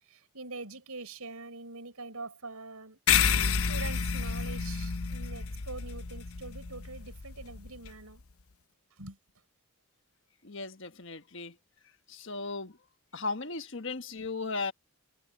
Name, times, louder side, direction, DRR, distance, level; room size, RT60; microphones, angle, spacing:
voice 1, 0.1-3.0 3.7-8.2 9.0-9.2, right 3 dB, 85° right, 4.8 m, -44 dB
sound 1, 3.1-7.9, left 7 dB, 75° left, 0.9 m, -30 dB
voice 2, 10.4-11.5 12.1-12.7 13.1-14.7, left 3 dB, 55° left, 1.4 m, -36 dB
head